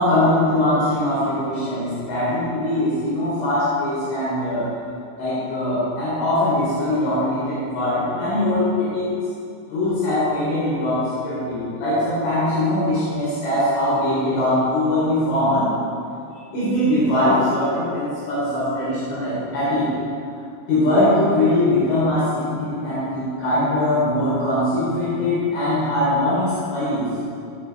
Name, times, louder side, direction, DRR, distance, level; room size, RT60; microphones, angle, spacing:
voice 1, 0.0-4.7 5.2-9.1 9.7-15.7 16.5-19.9 20.7-27.0, left 1 dB, 70° left, -10 dB, 6.2 m, -21 dB
17.5 x 12.0 x 3.6 m, 2.5 s
omnidirectional pair, 5.6 m